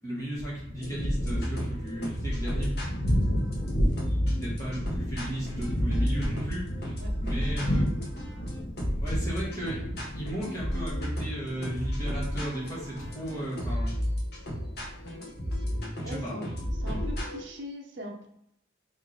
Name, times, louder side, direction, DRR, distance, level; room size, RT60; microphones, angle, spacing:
voice 1, 0.0-2.7 4.4-6.6 7.2-7.8 9.0-13.9 16.0-16.4, equal, 20° left, -7 dB, 1.3 m, -35 dB
Thunder, 0.5-15.8, equal, 90° left, 0.9 m, -32 dB
sound 1, 0.8-17.4, equal, 55° left, 1.0 m, -33 dB
voice 2, 16.0-18.3, equal, 70° right, 1 dB, 0.7 m, -40 dB
3.1 x 2.7 x 3.9 m, 0.76 s
head